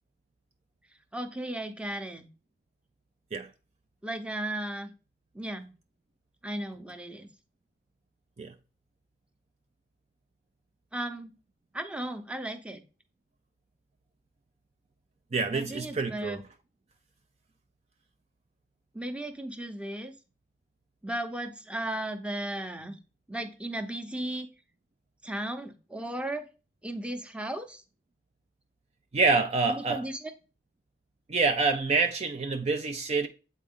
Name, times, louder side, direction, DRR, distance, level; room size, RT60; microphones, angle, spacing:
voice 1, 1.1-2.3 4.0-4.9 5.3-5.7 6.4-7.3 10.9-11.3 11.7-12.8 15.5-16.4 18.9-20.1 21.0-23.0 23.3-24.5 25.2-26.5 26.8-27.8 29.7-30.3, right 1 dB, 5° right, 0.8 m, -35 dB
voice 2, 15.3-16.4 29.1-30.0 31.3-33.3, right 4 dB, 40° right, 0.5 m, -27 dB
8.2 x 4.2 x 3.7 m
head